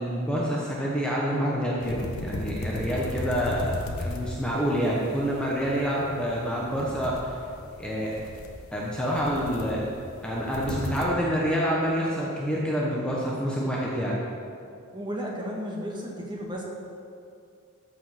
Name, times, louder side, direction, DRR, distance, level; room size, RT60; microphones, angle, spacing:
voice 1, 0.0-3.7 4.0-7.4 7.8-8.2 8.7-9.8 10.2-14.2, equal, 5° left, -5 dB, 1.1 m, -27 dB
sound 1, 1.8-11.1, left 1 dB, 75° left, 1.0 m, -37 dB
voice 2, 14.9-16.6, equal, 20° right, -2 dB, 1.6 m, -33 dB
14.0 x 5.2 x 5.9 m, 2.4 s
head